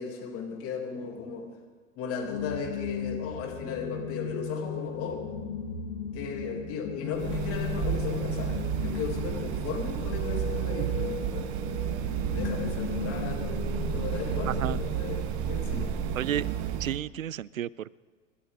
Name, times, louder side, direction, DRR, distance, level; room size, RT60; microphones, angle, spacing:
voice 1, 0.0-1.6 2.0-5.2 6.1-11.5 12.3-13.6 13.9-15.9, left 5 dB, 35° left, 1 dB, 3.2 m, -36 dB
sound 1, 2.2-14.9, left 5 dB, 60° left, 3.5 m, -36 dB
sound 2, 7.1-17.0, right 9 dB, 40° right, 1.2 m, -31 dB
voice 2, 14.4-14.8 16.2-16.5 16.8-18.0, right 11 dB, 90° right, 23 dB, 0.5 m, -31 dB
25.5 x 12.0 x 3.8 m, 1.5 s
hypercardioid pair, 105°, 39 cm